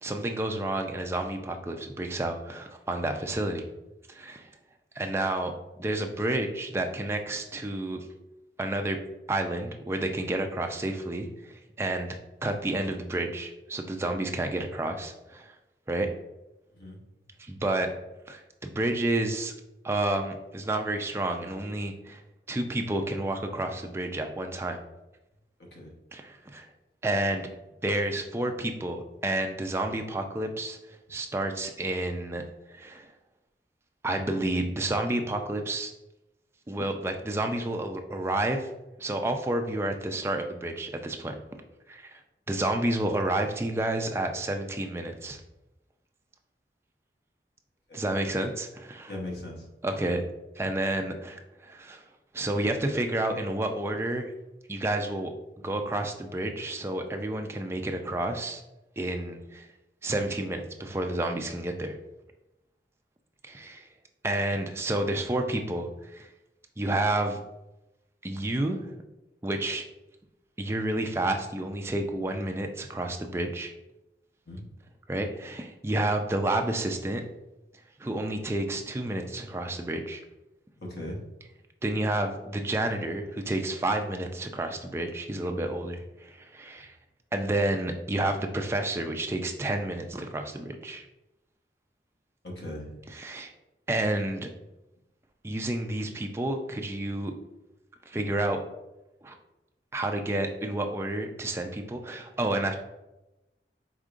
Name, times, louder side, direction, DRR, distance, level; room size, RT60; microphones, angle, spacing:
voice 1, 0.0-3.7 4.1-4.5 5.0-5.5 5.8-8.1 8.6-9.0 9.3-15.5 15.9-16.1 17.4-17.9 18.3-19.5 19.8-22.2 22.5-24.8 26.1-26.7 27.0-27.5 27.8-30.8 31.1-32.4 32.7-33.1 34.0-35.9 36.7-38.7 39.0-41.4 41.9-42.2 42.5-45.4 47.9-49.1 49.8-50.2 50.6-52.0 52.3-54.3 54.7-55.3 55.6-58.6 59.0-59.7 60.0-62.0 63.4-63.9 64.2-66.3 66.8-67.4 68.2-68.9 69.4-69.8 70.6-73.7 75.1-77.2 78.0-80.2 81.8-87.0 87.3-91.1 93.1-93.5 93.9-94.5 95.4-97.3 98.1-98.6 99.2-99.3 99.9-102.8, right 1 dB, 15° right, 4 dB, 0.3 m, -30 dB
voice 2, 25.6-25.9 47.9-48.0 49.1-49.7 74.5-74.7 80.8-81.2 92.4-93.0, left 1 dB, 70° left, -1 dB, 1.0 m, -39 dB
4.9 x 3.6 x 2.4 m, 0.98 s
head